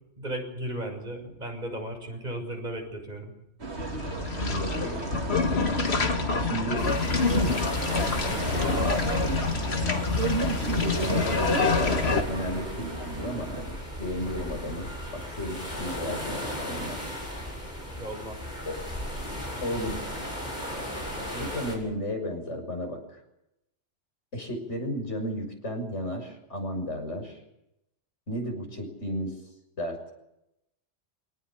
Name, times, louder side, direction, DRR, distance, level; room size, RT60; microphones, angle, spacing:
voice 1, 0.2-3.3 18.0-18.4, right 1 dB, 40° right, 2 dB, 6.8 m, -35 dB
sound 1, 3.6-13.6, right 3 dB, 65° right, 2.4 m, -33 dB
sound 2, 3.8-12.2, left 4 dB, 60° left, 1.8 m, -27 dB
voice 2, 4.4-5.1 6.4-6.9 7.2-7.6 8.8-9.4 10.8-16.4 16.6-17.0 18.6-18.8 19.6-20.0 21.3-23.0 24.3-27.4 28.3-29.4 29.8-30.0, equal, 85° left, 3 dB, 6.8 m, -33 dB
sound 3, 6.8-21.8, equal, 40° left, 8.1 m, -36 dB
26.0 x 19.0 x 8.6 m, 0.85 s
omnidirectional pair, 1.2 m